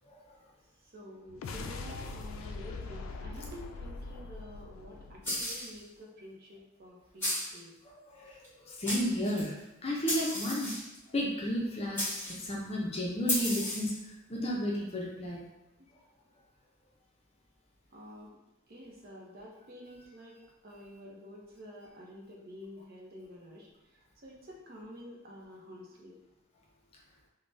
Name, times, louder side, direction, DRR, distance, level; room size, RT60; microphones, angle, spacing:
voice 1, 0.9-7.7 17.9-18.3 18.7-20.4 20.6-23.7 24.2-26.2, equal, 50° right, -2 dB, 0.6 m, -49 dB
sound 1, 1.3-5.8, left 3 dB, 85° left, 0.3 m, -42 dB
sound 2, 5.2-5.8 7.2-7.6 8.4-8.5 8.8-9.5 10.1-11.0 11.9-12.4 13.3-14.0, left 1 dB, 10° left, 1.4 m, -33 dB
voice 2, 8.1-8.4 8.6-9.6 9.8-10.8 11.1-12.0 12.4-13.9 14.3-15.4, equal, 30° left, -2 dB, 0.5 m, -32 dB
3.3 x 2.1 x 2.6 m, 0.98 s
head